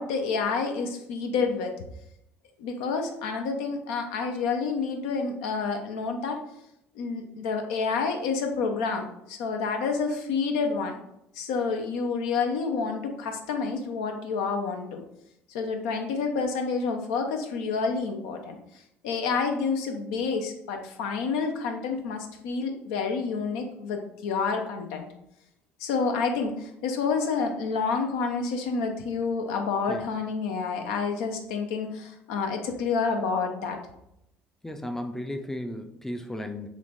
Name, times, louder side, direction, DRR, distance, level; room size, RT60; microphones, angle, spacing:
voice 1, 0.0-1.7 2.6-6.4 7.0-11.0 11.4-15.0 15.5-18.6 19.0-25.1 25.8-33.8, left 5 dB, 70° left, 4 dB, 0.5 m, -29 dB
voice 2, 34.6-36.7, left 1 dB, 5° left, 5 dB, 0.5 m, -34 dB
3.3 x 3.1 x 4.0 m, 0.80 s
figure-of-eight pair, 55°, 7 cm